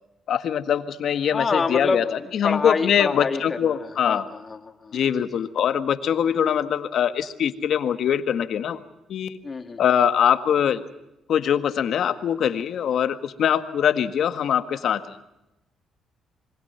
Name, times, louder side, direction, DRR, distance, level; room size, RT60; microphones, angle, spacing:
voice 1, 0.3-4.3 4.9-8.8 9.1-9.4 9.8-10.8 11.3-15.2, left 9 dB, 65° left, 10 dB, 1.7 m, -23 dB
voice 2, 1.3-5.3 9.4-9.8, left 4 dB, 35° left, 6 dB, 2.3 m, -27 dB
27.0 x 23.5 x 5.7 m, 0.92 s
cardioid pair, 90°, 0 cm